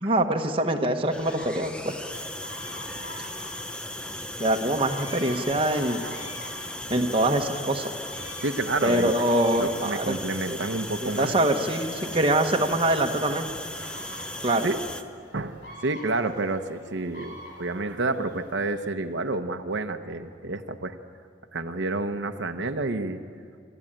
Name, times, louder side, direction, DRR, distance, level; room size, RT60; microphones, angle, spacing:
voice 1, 0.0-2.0 4.4-6.0 6.9-7.9 8.8-10.1 10.5-10.6 11.0-13.5 14.4-14.7, right 1 dB, 30° right, 3 dB, 1.2 m, -24 dB
sound 1, 1.1-15.0, left 1 dB, 5° left, 0.7 m, -37 dB
sound 2, 1.2-18.9, left 1 dB, 65° left, 4.4 m, -47 dB
voice 2, 8.2-9.1 9.6-11.3 13.8-14.8 15.3-20.9 21.5-23.2, right 2 dB, 85° right, 7 dB, 0.9 m, -30 dB
27.0 x 13.5 x 8.9 m, 2.3 s
head